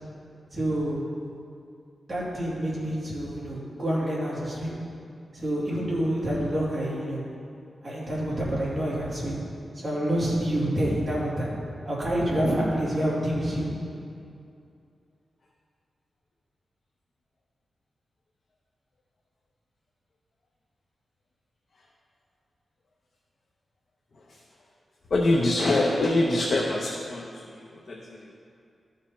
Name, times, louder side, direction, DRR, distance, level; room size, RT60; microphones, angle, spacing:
voice 1, 0.5-1.0 2.1-4.8 5.3-7.2 7.8-9.4 9.8-11.5 11.8-13.7, right 1 dB, 25° right, -7 dB, 2.3 m, -27 dB
voice 2, 25.1-28.3, left 2 dB, 45° left, -1 dB, 0.7 m, -25 dB
13.5 x 5.2 x 4.2 m, 2.5 s
wide cardioid pair, 175°, 0 cm